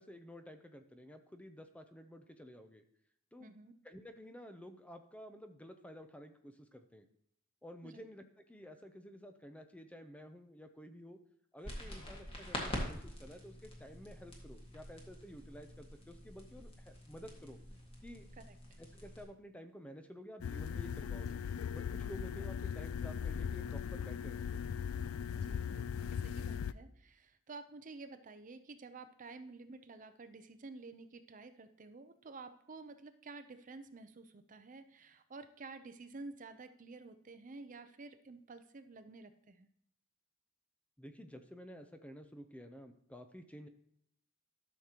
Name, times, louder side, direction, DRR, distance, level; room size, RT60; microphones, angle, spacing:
voice 1, 0.0-2.8 3.3-3.6 3.8-7.0 7.6-11.2 11.5-17.6 18.0-18.3 18.8-21.4 21.7-24.6 41.0-43.7, equal, 5° left, 7 dB, 0.5 m, -52 dB
voice 2, 3.4-3.7 7.8-8.0 18.4-18.6 25.4-39.7, right 3 dB, 40° right, 10 dB, 0.6 m, -51 dB
sound 1, 11.6-19.2, equal, 25° left, 1.7 m, -46 dB
sound 2, 20.4-26.7, left 7 dB, 75° left, 0.3 m, -39 dB
12.5 x 6.5 x 2.9 m, 0.70 s
head